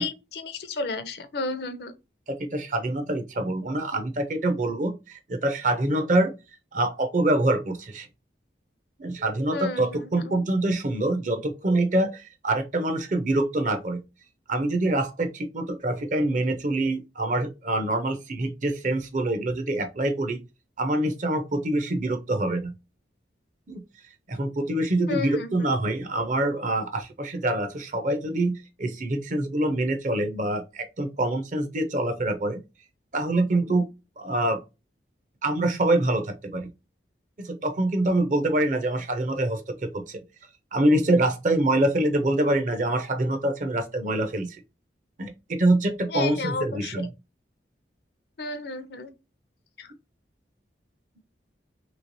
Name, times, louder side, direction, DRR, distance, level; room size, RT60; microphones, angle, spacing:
voice 1, 0.0-1.9 9.5-10.4 25.1-25.7 46.1-46.9 48.4-49.1 49.8-49.9, left 3 dB, 60° left, 0.5 m, -32 dB
voice 2, 2.3-6.3 6.7-8.1 9.0-14.0 14.5-20.4 20.8-22.7 23.7-23.8 24.3-32.6 33.1-33.9 34.2-34.6 35.4-36.7 37.4-40.2 40.7-44.6 45.2-47.1, right 1 dB, 40° right, 0.6 m, -25 dB
3.2 x 3.1 x 2.6 m
head